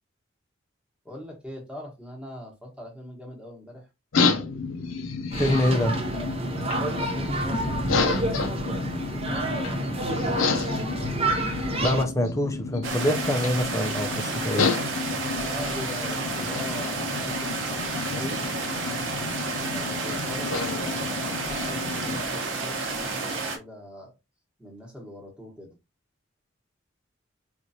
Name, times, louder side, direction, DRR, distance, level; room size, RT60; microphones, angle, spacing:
voice 1, 1.0-3.9 6.8-8.5 9.1-10.3 15.3-18.4 18.7-19.1 19.7-24.1 24.6-25.7, left 1 dB, 5° right, 1.1 m, -42 dB
sound 1, 4.1-22.2, left 4 dB, 75° left, 0.6 m, -31 dB
sound 2, 5.3-12.0, right 2 dB, 30° right, 0.6 m, -28 dB
voice 2, 5.4-6.0 11.8-14.7, left 1 dB, 15° left, 0.5 m, -25 dB
sound 3, 12.8-23.6, right 3 dB, 60° right, 1.0 m, -31 dB
4.5 x 2.5 x 2.7 m
head